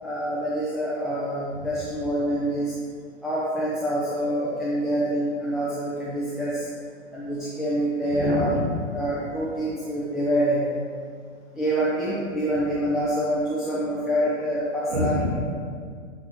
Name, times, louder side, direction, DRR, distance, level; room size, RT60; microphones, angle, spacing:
voice 1, 0.0-2.8 3.2-6.7 7.1-8.5 8.9-10.7 11.5-15.1, equal, ahead, -10 dB, 0.4 m, -26 dB
voice 2, 1.5-2.1 8.1-8.9 14.9-15.4, equal, 60° right, 0 dB, 1.3 m, -28 dB
7.7 x 4.6 x 2.9 m, 2.1 s
hypercardioid pair, 125°, 36 cm